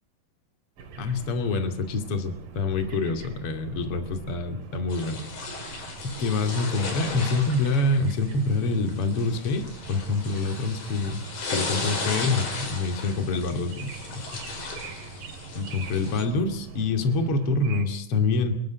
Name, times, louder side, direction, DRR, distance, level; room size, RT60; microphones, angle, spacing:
sound 1, 0.8-17.9, right 4 dB, 60° right, 3.6 m, -43 dB
voice 1, 1.0-5.2 5.5-5.7 6.0-11.2 11.5-14.4 15.5-18.5, left 3 dB, 40° left, 6 dB, 3.0 m, -26 dB
sound 2, 4.9-16.2, left 3 dB, 80° left, 7.2 m, -36 dB
28.5 x 12.5 x 9.5 m, 0.72 s
omnidirectional pair, 4.5 m